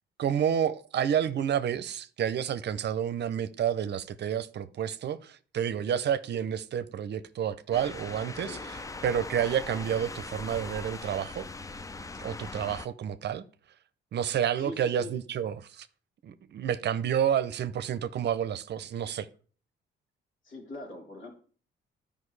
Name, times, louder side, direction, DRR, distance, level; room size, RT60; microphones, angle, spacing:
voice 1, 0.2-8.6 9.0-11.4 12.1-13.4 14.1-15.9 16.2-19.3, right 9 dB, 60° right, 0.7 m, -29 dB
sound 1, 7.7-12.9, left 3 dB, 15° left, 0.4 m, -40 dB
voice 2, 8.4-8.8 14.5-15.1 20.4-21.3, left 1 dB, 75° left, 3.5 m, -42 dB
12.0 x 5.2 x 3.3 m
cardioid pair, 90°, 20 cm